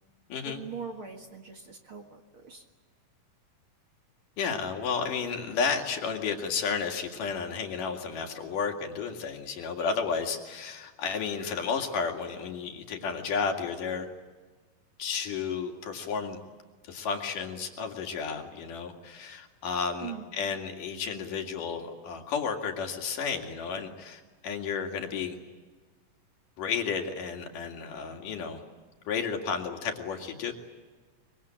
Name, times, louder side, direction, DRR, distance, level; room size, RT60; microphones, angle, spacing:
voice 1, 0.4-2.6 20.0-20.3, right 7 dB, 45° right, 3 dB, 2.1 m, -41 dB
voice 2, 4.4-14.1 15.0-16.4 16.8-25.4 26.6-28.6 29.1-30.5, left 6 dB, 70° left, 3 dB, 3.8 m, -32 dB
24.0 x 23.5 x 8.9 m, 1.3 s
omnidirectional pair, 3.9 m